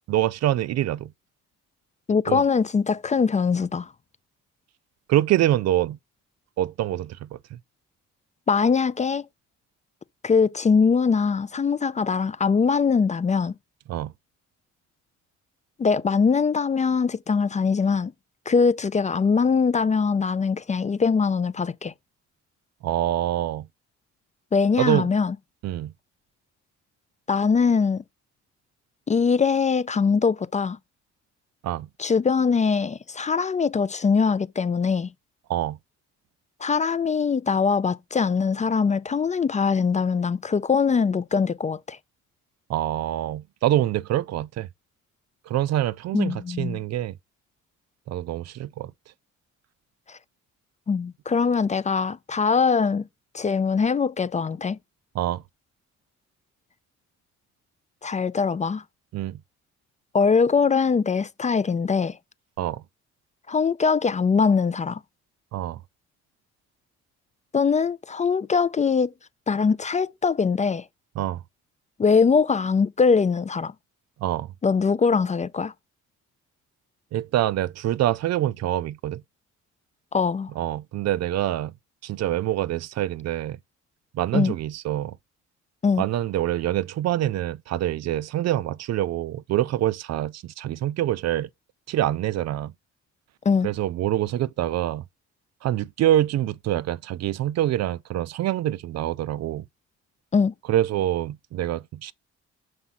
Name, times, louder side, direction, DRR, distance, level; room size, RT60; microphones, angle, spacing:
voice 1, 0.1-1.1 2.3-2.4 5.1-6.0 6.6-7.6 13.9-14.1 22.8-23.7 24.8-25.1 25.6-25.9 31.6-31.9 35.5-35.8 42.7-44.7 45.5-47.2 48.1-48.9 55.1-55.4 59.1-59.4 62.6-62.8 65.5-65.8 71.2-71.4 74.2-74.5 77.1-79.2 80.6-81.7 82.0-83.6 84.1-85.2 86.0-91.5 91.9-92.7 93.6-95.0 95.6-99.7 100.7-102.1, right 13 dB, 60° right, 0.4 m, -25 dB
voice 2, 2.1-3.9 8.5-9.3 10.2-13.5 15.8-18.1 18.5-21.9 24.5-25.4 27.3-28.0 29.1-30.8 32.0-35.1 36.6-42.0 46.1-46.8 50.1-50.2 50.9-53.0 53.3-54.8 58.0-58.8 60.1-62.2 63.5-65.0 67.5-69.1 69.5-70.9 72.0-73.7 74.6-75.7 80.1-80.5 84.3-84.5 85.8-86.0 93.5-93.7 100.3-100.5, left 5 dB, 25° left, 0.4 m, -22 dB
5.8 x 4.9 x 4.0 m
cardioid pair, 90°, 30 cm